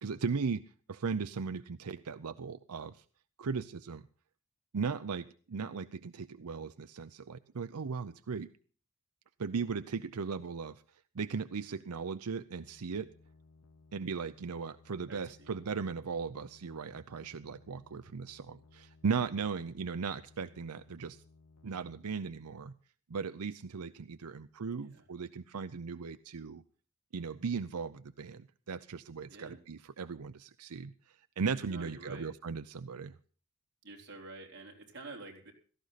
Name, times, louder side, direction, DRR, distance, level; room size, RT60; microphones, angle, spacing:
voice 1, 0.0-3.0 3.4-4.1 4.7-8.5 9.4-10.8 11.1-13.1 13.9-21.2 21.6-22.7 23.1-26.6 27.1-33.1, right 5 dB, 90° right, 12 dB, 0.6 m, -37 dB
sound 1, 12.6-22.1, left 3 dB, 80° left, 1.0 m, -61 dB
voice 2, 15.1-15.5 24.8-25.0 29.3-29.6 31.7-32.3 33.8-35.5, right 2 dB, 50° right, 1 dB, 4.0 m, -48 dB
16.5 x 14.0 x 4.1 m, 0.41 s
head